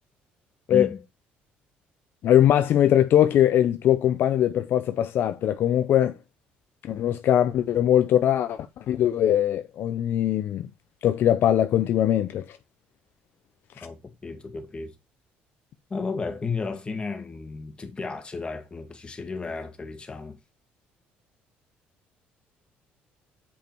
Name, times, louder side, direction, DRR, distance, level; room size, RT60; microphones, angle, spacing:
voice 1, 0.7-1.0 13.8-14.9 15.9-20.4, left 4 dB, 25° left, 1.8 m, -33 dB
voice 2, 2.2-6.1 6.8-10.7 11.0-12.4 13.8-13.9, left 11 dB, 65° left, 0.6 m, -21 dB
7.4 x 5.3 x 4.5 m
cardioid pair, 95°, 4 cm